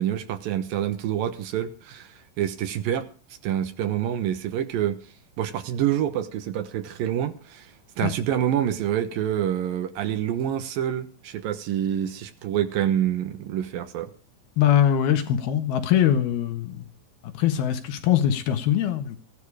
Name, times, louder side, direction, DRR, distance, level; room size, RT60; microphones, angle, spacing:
voice 1, 0.0-2.1 2.4-3.0 3.4-5.0 5.4-7.7 8.0-14.1, right 10 dB, 75° right, 2.9 m, -27 dB
voice 2, 14.6-16.9 17.2-19.2, left 10 dB, 90° left, 3.5 m, -22 dB
16.0 x 12.0 x 4.9 m
omnidirectional pair, 4.2 m